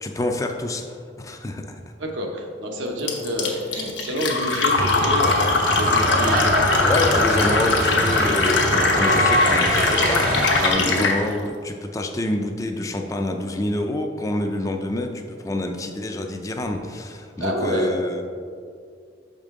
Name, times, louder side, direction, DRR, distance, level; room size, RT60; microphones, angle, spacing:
voice 1, 0.0-1.8 6.8-18.2, left 1 dB, 15° left, 4 dB, 0.4 m, -27 dB
voice 2, 2.0-6.8 10.7-11.0 17.4-18.0, equal, 80° right, 1 dB, 0.9 m, -28 dB
Fill (with liquid), 3.1-11.2, left 3 dB, 70° left, 0.8 m, -21 dB
sound 1, 4.8-10.7, right 1 dB, 45° right, 0.5 m, -24 dB
6.5 x 5.1 x 3.6 m, 2.2 s
head